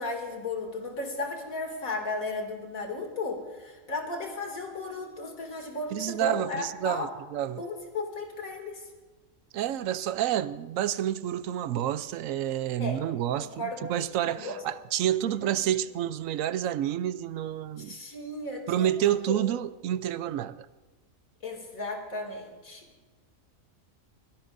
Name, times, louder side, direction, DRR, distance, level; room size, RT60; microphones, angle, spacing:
voice 1, 0.0-7.1 7.6-8.9 12.8-13.0 13.4-13.9 14.2-14.6 17.8-19.4 21.4-22.8, left 2 dB, 90° left, 2.9 m, -35 dB
voice 2, 5.9-7.6 9.5-18.0 18.7-20.7, right 11 dB, 75° right, 0.9 m, -29 dB
22.0 x 17.0 x 2.6 m
omnidirectional pair, 1.4 m